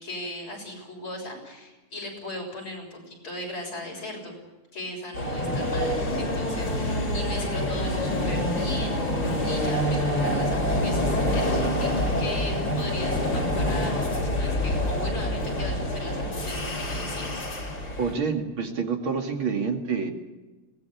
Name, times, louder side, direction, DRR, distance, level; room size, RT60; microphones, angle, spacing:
voice 1, 0.0-4.3 4.7-11.9 12.2-17.4, left 1 dB, 75° left, 0 dB, 7.6 m, -38 dB
sound 1, 5.1-18.1, left 1 dB, 55° left, 5.0 m, -26 dB
voice 2, 18.0-20.1, right 5 dB, 70° right, 3 dB, 3.1 m, -27 dB
22.0 x 18.5 x 8.4 m, 1.1 s
omnidirectional pair, 2.3 m